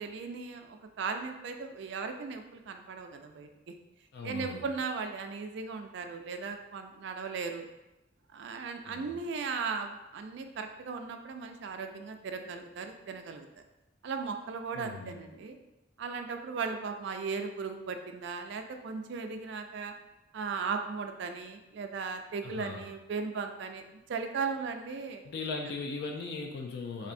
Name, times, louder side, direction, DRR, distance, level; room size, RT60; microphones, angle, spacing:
voice 1, 0.0-3.7 4.2-7.7 8.3-13.5 14.0-15.6 16.0-19.9 20.3-23.8 24.1-25.2, right 5 dB, 70° right, 6 dB, 0.4 m, -37 dB
voice 2, 4.1-4.6 8.9-9.1 14.7-15.2 22.4-22.8 25.2-27.1, left 4 dB, 60° left, 1 dB, 0.4 m, -38 dB
4.3 x 2.6 x 2.5 m, 0.96 s
head